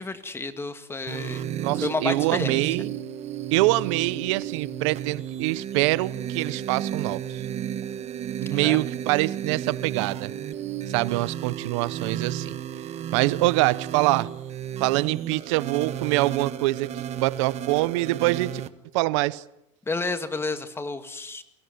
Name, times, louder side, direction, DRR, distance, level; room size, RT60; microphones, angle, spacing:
voice 1, 0.0-1.5 1.8-2.6 8.5-8.8 19.9-21.4, left 3 dB, 15° left, 2.0 m, -31 dB
sound 1, 1.1-18.7, right 10 dB, 45° right, 1.3 m, -33 dB
voice 2, 1.6-3.0 3.5-7.4 8.4-10.3 10.9-12.5 13.1-14.3 14.8-18.6 18.9-19.4, right 20 dB, 90° right, 0.8 m, -25 dB
23.0 x 16.0 x 9.6 m
supercardioid pair, 120°, 15 cm